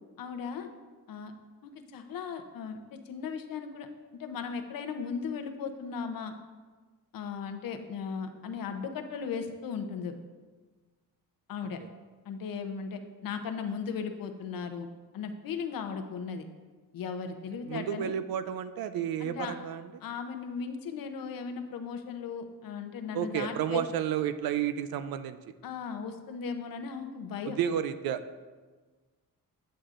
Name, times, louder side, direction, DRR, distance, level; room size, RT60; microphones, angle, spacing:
voice 1, 0.2-0.7 1.1-1.3 1.6-3.9 4.1-6.3 7.1-10.1 11.5-11.8 12.3-14.9 15.1-16.5 16.9-18.1 19.2-19.5 20.0-23.8 25.6-27.6, left 6 dB, 65° left, 6 dB, 0.8 m, -37 dB
voice 2, 17.7-19.9 23.1-25.4 27.5-28.2, right 9 dB, 75° right, 12 dB, 0.5 m, -31 dB
8.2 x 7.7 x 2.5 m, 1.3 s
cardioid pair, 125°, 36 cm